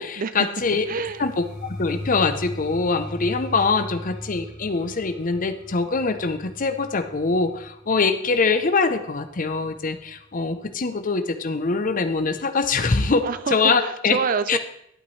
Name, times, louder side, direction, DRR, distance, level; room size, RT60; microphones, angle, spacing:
voice 1, 0.0-0.8 1.2-1.5 1.8-14.2 14.5-14.6, left 4 dB, 40° left, 9 dB, 0.7 m, -23 dB
sound 1, 0.6-10.4, left 1 dB, 5° right, 2.5 m, -39 dB
voice 2, 0.7-1.2 13.2-14.6, right 5 dB, 40° right, 13 dB, 0.5 m, -27 dB
11.5 x 9.0 x 3.2 m, 0.76 s
head